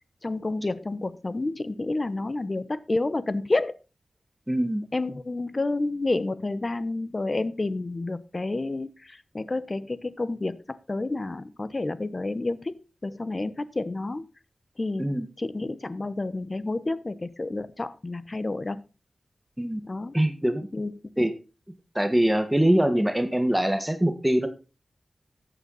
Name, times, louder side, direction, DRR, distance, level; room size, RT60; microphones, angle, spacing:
voice 1, 0.2-3.7 4.9-14.2 14.8-18.8 19.9-20.1 20.7-20.9 21.2-21.3, left 2 dB, 35° left, 15 dB, 0.9 m, -30 dB
voice 2, 4.5-4.8 15.0-15.3 19.6-19.9 20.1-20.7 21.2-21.3 21.9-24.5, right 1 dB, 10° right, 8 dB, 1.6 m, -23 dB
14.0 x 9.0 x 4.1 m, 0.31 s
wide cardioid pair, 110°, 0 cm